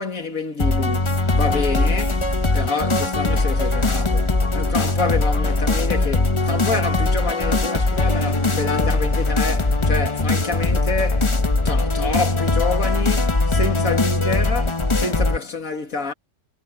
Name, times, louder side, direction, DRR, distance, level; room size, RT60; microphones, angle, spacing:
voice 1, 0.0-11.3 11.6-16.1, left 4 dB, 60° left, 2.7 m, -27 dB
sound 1, 0.6-15.4, left 2 dB, 20° left, 1.0 m, -20 dB
omnidirectional pair, 1.7 m